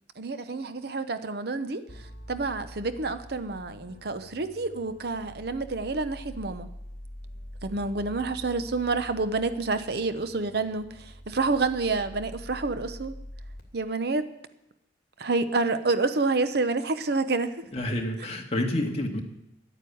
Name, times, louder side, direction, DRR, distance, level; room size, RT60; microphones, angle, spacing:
voice 1, 0.2-1.8 2.3-6.7 7.6-13.1 13.7-14.3 15.2-17.6, right 3 dB, 60° right, 11 dB, 0.8 m, -28 dB
sound 1, 1.9-13.6, equal, 55° left, 2.6 m, -45 dB
voice 2, 17.7-19.2, left 1 dB, 35° left, 1 dB, 1.8 m, -28 dB
11.0 x 9.2 x 8.6 m, 0.83 s
head